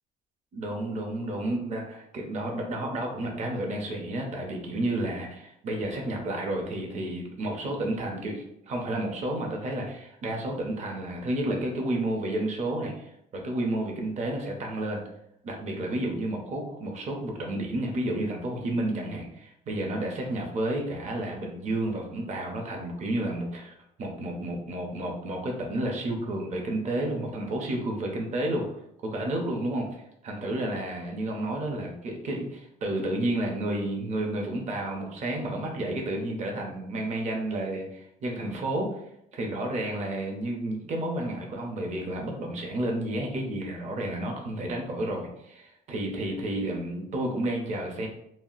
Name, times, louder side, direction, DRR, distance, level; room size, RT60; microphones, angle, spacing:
voice 1, 0.5-15.0 15.4-23.7 24.0-28.6 29.0-39.0 39.3-48.1, right 1 dB, 45° right, 1 dB, 0.7 m, -31 dB
2.4 x 2.0 x 3.7 m, 0.76 s
cardioid pair, 110°, 17 cm